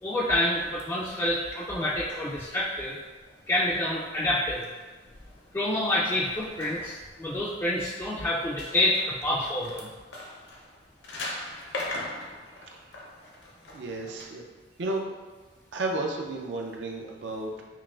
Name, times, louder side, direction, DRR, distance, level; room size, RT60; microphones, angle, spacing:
voice 1, 0.0-3.0 3.5-4.7 5.5-9.9, left 1 dB, 15° left, -7 dB, 0.3 m, -27 dB
sound 1, 0.5-14.2, left 2 dB, 65° left, 0.7 m, -43 dB
voice 2, 13.7-14.5 14.8-15.1 15.7-17.6, right 2 dB, 70° right, 0 dB, 0.4 m, -32 dB
5.7 x 2.4 x 2.3 m, 1.3 s
head